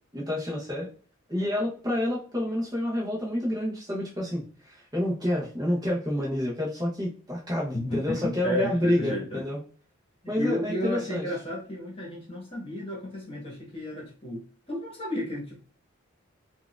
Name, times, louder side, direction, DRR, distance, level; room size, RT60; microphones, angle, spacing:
voice 1, 0.1-0.9 1.3-9.6 10.3-11.2, left 1 dB, 20° right, -5 dB, 0.8 m, -28 dB
voice 2, 7.7-9.4 10.2-15.6, left 1 dB, 25° left, -3 dB, 1.2 m, -33 dB
4.1 x 2.4 x 2.3 m, 0.40 s
head